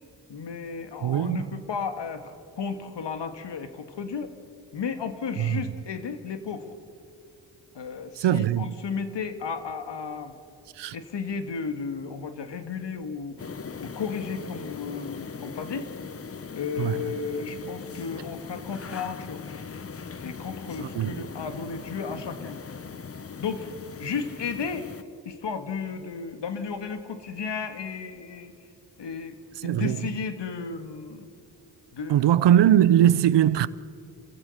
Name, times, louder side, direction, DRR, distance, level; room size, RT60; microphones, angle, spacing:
voice 1, 0.3-4.3 4.7-6.7 7.8-10.3 10.9-13.5 13.8-15.9 16.5-19.4 20.2-22.6 23.4-23.7 24.0-24.9 25.3-28.5 29.0-31.3 31.9-32.2, left 5 dB, 65° left, 1.9 m, -34 dB
voice 2, 1.0-1.5 5.4-5.6 8.2-8.7 10.8-11.0 16.8-17.0 20.8-21.2 29.6-30.0 32.1-33.7, right 11 dB, 65° right, 0.7 m, -21 dB
sound 1, 13.4-25.0, left 5 dB, 30° left, 0.9 m, -40 dB
28.0 x 15.0 x 6.6 m
cardioid pair, 55°, 46 cm